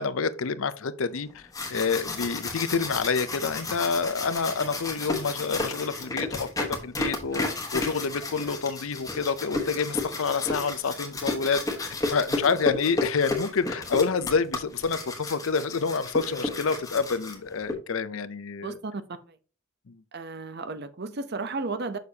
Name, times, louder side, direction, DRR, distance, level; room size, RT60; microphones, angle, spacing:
voice 1, 0.0-7.4 7.7-18.8 19.9-20.0, left 5 dB, 65° left, 0.6 m, -28 dB
sound 1, 1.3-17.7, left 2 dB, 15° left, 1.2 m, -32 dB
voice 2, 18.6-19.4 20.1-22.0, right 3 dB, 45° right, 0.6 m, -34 dB
6.6 x 6.5 x 2.8 m
head